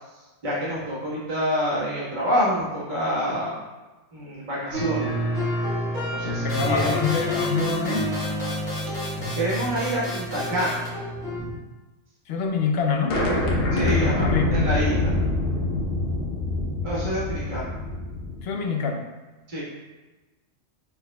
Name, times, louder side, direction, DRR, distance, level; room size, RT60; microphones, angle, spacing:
voice 1, 0.4-3.6 4.1-5.1 6.0-7.0 9.3-10.8 11.3-11.5 13.7-15.2 16.8-17.7 19.5-19.6, equal, 40° right, -8 dB, 1.4 m, -27 dB
sound 1, 4.7-11.4, equal, 75° right, 1.7 m, -28 dB
voice 2, 6.4-8.1 12.3-13.3 13.9-14.6 18.4-19.0, left 5 dB, 65° left, 3 dB, 0.7 m, -26 dB
sound 2, 6.5-10.9, left 2 dB, 40° left, 1.4 m, -35 dB
sound 3, 13.1-18.4, left 2 dB, 90° left, 1.2 m, -25 dB
5.2 x 4.0 x 2.2 m, 1.1 s
omnidirectional pair, 1.3 m